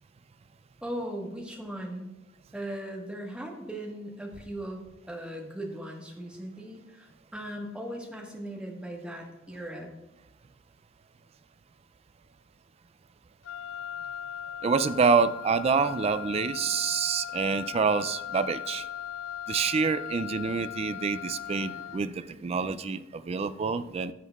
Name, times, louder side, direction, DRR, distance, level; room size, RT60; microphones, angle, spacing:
voice 1, 0.8-2.1 2.5-4.8 5.1-10.0, right 1 dB, 5° right, -1 dB, 1.4 m, -38 dB
Wind instrument woodwind instrument, 13.4-22.1, left 9 dB, 90° left, 0.4 m, -38 dB
voice 2, 14.6-18.9 19.5-24.1, right 5 dB, 30° right, 13 dB, 0.3 m, -27 dB
16.0 x 6.4 x 2.4 m, 1.0 s
head